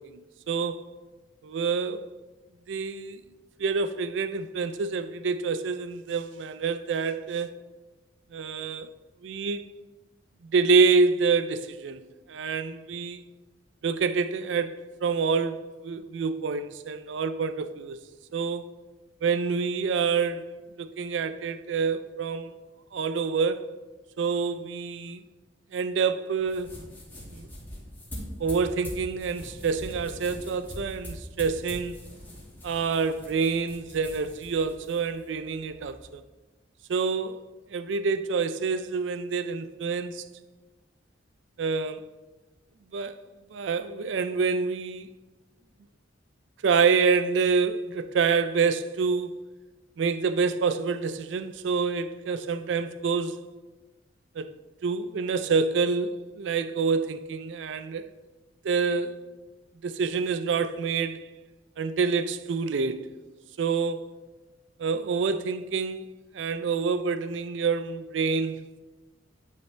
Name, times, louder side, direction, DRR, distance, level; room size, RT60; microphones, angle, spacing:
voice 1, 0.5-0.8 1.4-2.0 2.7-3.2 3.6-7.5 8.3-8.9 9.2-9.7 10.4-12.0 12.3-13.2 13.8-18.0 18.3-18.7 19.2-22.5 22.9-23.7 24.2-25.2 25.7-26.7 27.3-27.5 28.4-32.0 32.6-36.2 36.9-37.4 37.7-40.2 41.6-42.0 42.9-43.2 43.5-45.1 46.6-49.3 50.0-53.5 54.4-54.5 54.8-58.0 58.6-59.2 59.8-61.2 61.8-63.1 63.6-64.1 64.8-66.0 66.3-68.8, right 5 dB, 80° right, 0.4 m, -27 dB
sound 1, 26.4-36.1, equal, 10° left, 2.3 m, -43 dB
10.0 x 5.6 x 3.3 m
head